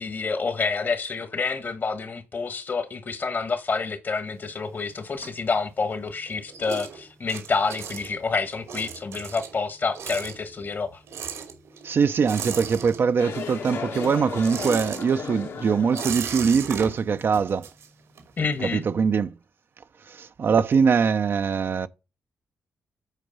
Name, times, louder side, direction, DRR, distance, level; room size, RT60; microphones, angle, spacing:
voice 1, 0.0-11.0 18.4-18.8, left 4 dB, 45° left, 1.4 m, -28 dB
sound 1, 4.3-5.9 6.2-13.4 13.7-18.4, right 7 dB, 85° right, 2.4 m, -37 dB
voice 2, 11.8-17.7 18.6-19.3 20.1-21.9, right 6 dB, 50° right, 0.6 m, -22 dB
sound 2, 13.2-16.5, left 5 dB, 75° left, 2.1 m, -35 dB
8.2 x 4.5 x 5.4 m
cardioid pair, 85°, 5 cm